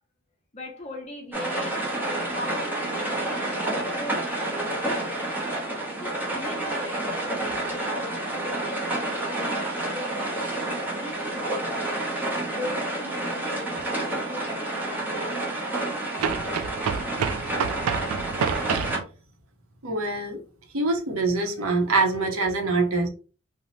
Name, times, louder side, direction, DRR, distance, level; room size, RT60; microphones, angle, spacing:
voice 1, 0.5-5.6 6.0-8.8 9.1-11.9 12.5-15.4, left 1 dB, 30° left, 0.6 m, -40 dB
sound 1, 1.3-19.0, right 2 dB, 10° right, 0.7 m, -29 dB
sound 2, 13.8-13.9 16.2-19.0, right 7 dB, 90° right, 0.3 m, -29 dB
voice 2, 19.8-20.4 20.7-23.1, right 3 dB, 70° right, 0.7 m, -24 dB
2.7 x 2.0 x 3.0 m
head